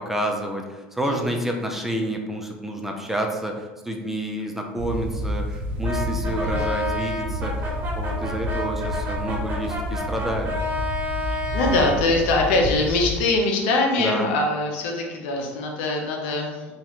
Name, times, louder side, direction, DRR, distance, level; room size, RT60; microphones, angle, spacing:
voice 1, 0.0-7.5 8.0-10.6 14.0-14.3, right 1 dB, 5° right, 2 dB, 0.4 m, -29 dB
sound 1, 4.8-13.2, left 1 dB, 85° right, 0.4 m, -30 dB
Brass instrument, 5.8-12.0, left 1 dB, 30° right, 1.1 m, -30 dB
voice 2, 6.1-6.7 11.3-16.7, left 2 dB, 80° left, 2 dB, 0.6 m, -23 dB
3.0 x 2.4 x 3.0 m, 1.2 s
supercardioid pair, 100°, 6 cm